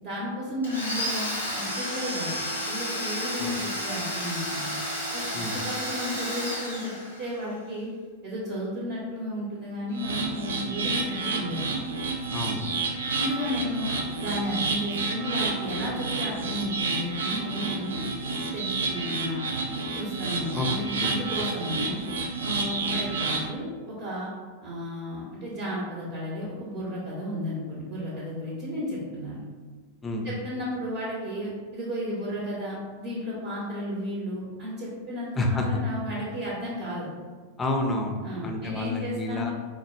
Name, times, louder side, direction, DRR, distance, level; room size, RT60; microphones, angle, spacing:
voice 1, 0.0-3.6 3.8-4.7 5.1-6.9 7.2-7.9 8.2-11.7 13.1-18.0 18.5-19.6 19.9-22.0 22.4-24.3 24.6-29.4 30.2-37.1 38.2-39.5, left 1 dB, 45° right, -6 dB, 0.7 m, -33 dB
Domestic sounds home sounds, 0.6-7.4, equal, 90° right, 0.9 m, -32 dB
sound 1, 9.9-23.5, right 3 dB, 65° right, 0.4 m, -30 dB
voice 2, 12.3-12.7 20.5-20.7 21.0-21.1 30.0-30.3 35.4-35.8 37.6-39.5, left 2 dB, 15° left, 1 dB, 0.4 m, -29 dB
3.9 x 2.0 x 2.3 m, 1.4 s
figure-of-eight pair, 90°, 0 cm